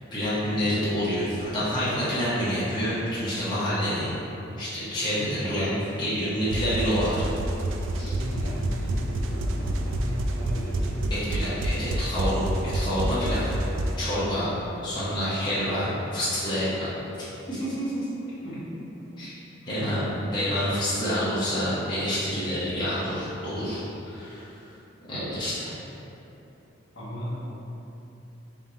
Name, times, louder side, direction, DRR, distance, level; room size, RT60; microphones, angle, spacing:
voice 1, 0.1-4.1 4.6-7.2 7.9-8.1 11.1-13.5 14.0-14.5 14.8-16.9 17.2-18.1 19.2-19.3 19.7-20.0 20.3-24.5 25.1-25.8, equal, 25° left, -11 dB, 0.8 m, -28 dB
sound 1, 6.5-14.0, right 1 dB, 90° right, 0.3 m, -28 dB
voice 2, 8.1-11.5 18.3-19.0 19.6-20.3 26.9-27.3, equal, 70° left, -8 dB, 1.1 m, -35 dB
3.5 x 2.7 x 3.8 m, 3.0 s
head